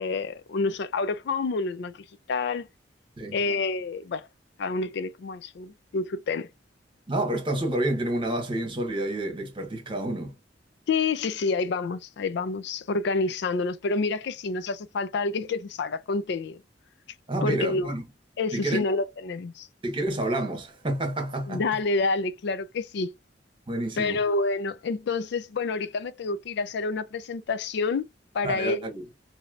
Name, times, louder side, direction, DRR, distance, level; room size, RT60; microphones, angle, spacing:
voice 1, 0.0-2.7 3.3-4.3 4.6-6.5 10.9-16.6 17.4-17.9 18.4-19.7 21.5-23.1 24.0-28.1 28.3-28.9, left 3 dB, 65° left, 0.4 m, -28 dB
voice 2, 7.1-10.3 17.3-18.0 18.5-18.8 19.8-21.6 23.7-24.2 28.4-29.0, right 1 dB, 30° right, 1.1 m, -29 dB
3.1 x 2.7 x 2.4 m
head